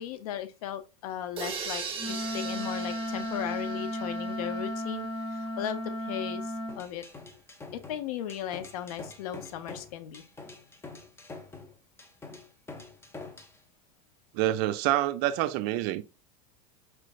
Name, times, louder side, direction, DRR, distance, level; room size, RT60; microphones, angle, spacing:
voice 1, 0.0-7.0 7.7-10.2, left 10 dB, 80° left, 0.6 m, -37 dB
sound 1, 1.4-5.1, right 5 dB, 30° right, 1.3 m, -39 dB
Wind instrument woodwind instrument, 2.0-6.8, left 1 dB, 30° left, 1.0 m, -34 dB
sound 2, 6.7-13.6, left 3 dB, 15° left, 0.6 m, -46 dB
voice 2, 14.3-16.0, right 14 dB, 55° right, 0.4 m, -27 dB
4.5 x 3.1 x 2.4 m
supercardioid pair, 120°, 19 cm